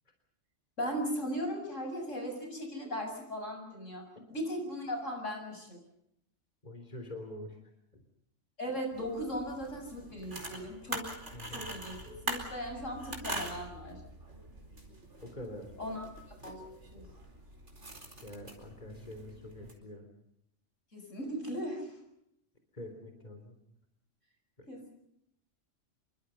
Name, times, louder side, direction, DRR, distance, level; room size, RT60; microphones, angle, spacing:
voice 1, 0.8-4.0 4.3-5.8 8.6-11.1 11.5-12.0 12.3-14.0 15.8-16.1 16.4-16.6 16.9-17.0 20.9-21.9 24.7-24.9, equal, 75° left, 3 dB, 7.8 m, -37 dB
voice 2, 6.6-7.6 7.9-8.0 11.3-11.7 15.2-15.7 18.2-20.1 22.7-23.6, left 1 dB, 35° left, 5 dB, 3.8 m, -45 dB
sound 1, 8.9-19.7, right 1 dB, 65° right, 4.8 m, -44 dB
28.0 x 23.5 x 5.7 m, 0.77 s
omnidirectional pair, 1.3 m